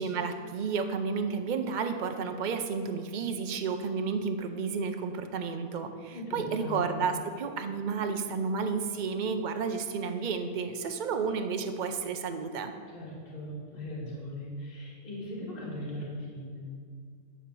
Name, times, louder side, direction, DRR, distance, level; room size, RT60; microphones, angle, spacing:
voice 1, 0.0-12.7, right 5 dB, 65° right, 6 dB, 0.4 m, -31 dB
voice 2, 6.1-7.1 12.9-16.6, left 1 dB, 35° left, -6 dB, 2.4 m, -39 dB
9.7 x 4.3 x 6.8 m, 2.2 s
omnidirectional pair, 1.6 m